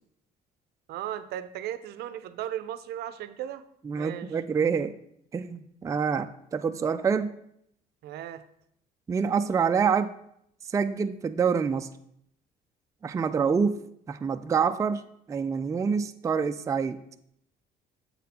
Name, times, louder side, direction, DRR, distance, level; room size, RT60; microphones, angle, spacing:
voice 1, 0.9-3.6 3.9-4.4 8.0-8.4, right 11 dB, 75° right, 12 dB, 0.5 m, -36 dB
voice 2, 3.8-4.9 5.3-7.3 9.1-10.1 10.7-11.9 13.0-13.8 14.1-15.0 15.3-17.0, right 6 dB, 20° right, 8 dB, 0.3 m, -26 dB
7.3 x 4.2 x 4.2 m, 0.73 s
cardioid pair, 110°, 17 cm